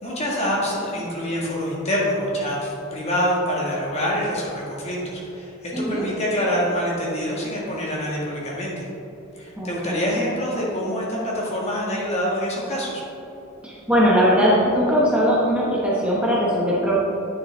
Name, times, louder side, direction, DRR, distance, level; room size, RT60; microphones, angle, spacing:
voice 1, 0.0-8.9 9.4-13.0, equal, 30° left, -5 dB, 1.8 m, -26 dB
voice 2, 5.7-6.1 9.6-10.1 13.6-17.0, equal, 5° right, -7 dB, 1.0 m, -20 dB
9.4 x 6.5 x 3.5 m, 3.0 s
head